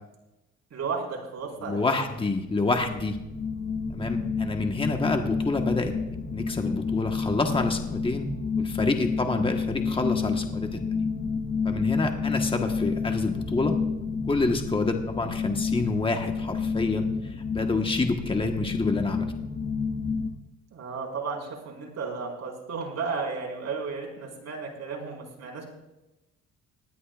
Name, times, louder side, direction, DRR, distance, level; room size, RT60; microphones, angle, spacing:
voice 1, 0.7-2.1 9.2-9.5 20.7-25.6, right 4 dB, 60° right, -1 dB, 4.7 m, -34 dB
voice 2, 1.6-3.2 3.9-5.9 6.3-8.3 8.6-10.8 11.6-13.8 14.3-19.3, left 3 dB, 15° left, 4 dB, 1.3 m, -28 dB
sound 1, 2.1-20.3, left 5 dB, 45° left, 1.6 m, -30 dB
19.0 x 12.5 x 2.4 m, 0.97 s
cardioid pair, 90°, 30 cm